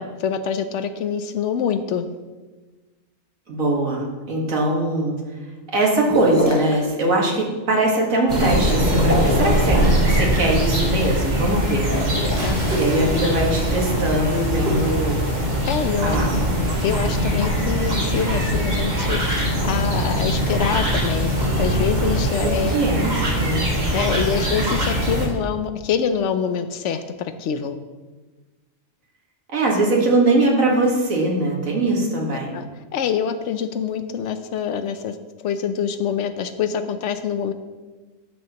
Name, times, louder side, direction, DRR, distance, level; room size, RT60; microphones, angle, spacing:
voice 1, 0.2-2.1 12.4-12.8 15.7-16.2 16.8-19.4 19.6-21.3 21.6-22.8 23.9-27.8 32.5-32.6 32.9-35.2 35.4-37.5, left 7 dB, 70° left, 10 dB, 0.9 m, -25 dB
voice 2, 3.5-5.2 5.7-12.1 12.7-15.2 16.0-16.3 22.4-23.7 29.5-32.6, right 2 dB, 85° right, -1 dB, 2.0 m, -21 dB
sound 1, 6.1-6.8 9.0-9.6 11.7-12.4, left 1 dB, 15° left, 1.1 m, -24 dB
sound 2, 8.3-25.3, equal, 35° right, 1.4 m, -21 dB
Shatter, 12.4-15.1, equal, 65° right, 2.4 m, -37 dB
12.5 x 6.3 x 2.9 m, 1.3 s
omnidirectional pair, 1.4 m